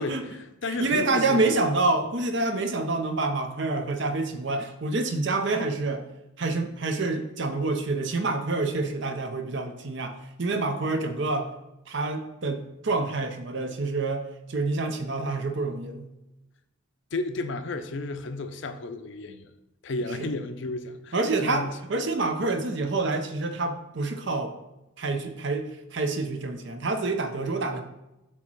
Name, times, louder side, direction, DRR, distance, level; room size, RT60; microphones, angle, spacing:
voice 1, 0.0-1.6 17.1-19.5 19.8-21.2 21.4-21.7, left 2 dB, 60° left, 9 dB, 0.5 m, -32 dB
voice 2, 0.7-6.0 6.4-11.5 11.9-14.2 14.5-16.1 20.2-20.3 21.1-24.5 25.0-27.8, right 3 dB, 55° right, 6 dB, 0.7 m, -27 dB
8.0 x 3.0 x 6.1 m, 0.94 s
head